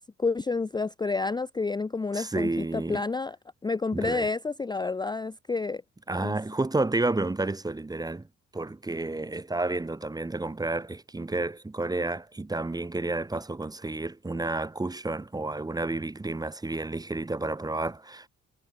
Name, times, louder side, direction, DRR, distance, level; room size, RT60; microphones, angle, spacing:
voice 1, 0.2-3.4 3.6-5.8 6.2-6.4, left 3 dB, 15° left, 0.6 m, -29 dB
voice 2, 2.1-3.0 3.9-4.3 6.1-8.3 8.5-18.3, right 2 dB, 10° right, 0.9 m, -30 dB
cardioid pair, 95°, 31 cm